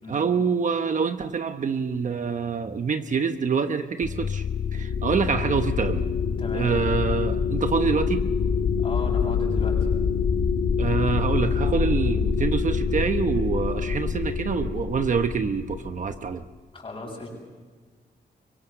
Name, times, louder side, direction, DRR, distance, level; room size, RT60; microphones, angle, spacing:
voice 1, 0.1-4.4 4.7-6.1 6.5-8.2 10.8-16.4, right 6 dB, 45° right, 8 dB, 1.0 m, -26 dB
sound 1, 4.0-16.3, left 6 dB, 55° left, 2.3 m, -25 dB
voice 2, 6.4-6.7 8.8-9.9 16.7-17.3, left 2 dB, 30° left, -1 dB, 7.5 m, -36 dB
24.5 x 23.5 x 6.8 m, 1.4 s
wide cardioid pair, 175°, 18 cm